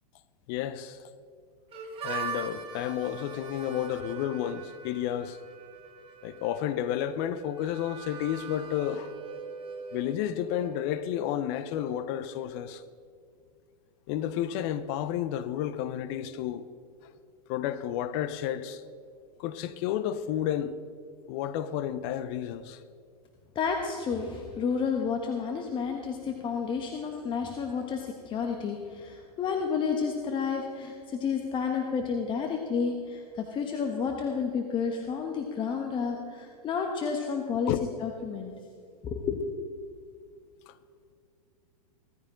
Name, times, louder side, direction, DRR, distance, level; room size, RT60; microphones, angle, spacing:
voice 1, 0.5-1.0 2.0-5.4 6.2-9.1 9.9-12.8 14.1-16.7 17.5-18.8 19.4-20.8 21.3-22.8 37.7-37.8 40.7-40.8, left 10 dB, 45° left, 0.8 m, -31 dB
Harmonica, 1.7-11.3, right 6 dB, 25° right, 2.2 m, -42 dB
voice 2, 23.5-37.7 38.0-38.5 39.0-39.4, left 6 dB, 25° left, 1.3 m, -31 dB
16.5 x 14.5 x 3.8 m
hypercardioid pair, 115°, 20 cm